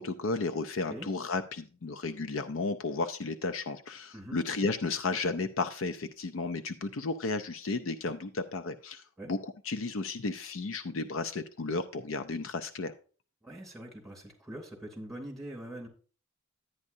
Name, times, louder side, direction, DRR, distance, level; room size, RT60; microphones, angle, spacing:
voice 1, 0.0-12.9, left 3 dB, 60° left, 9 dB, 0.5 m, -33 dB
voice 2, 13.4-15.9, right 1 dB, ahead, -2 dB, 2.8 m, -43 dB
11.0 x 9.6 x 2.7 m, 0.39 s
head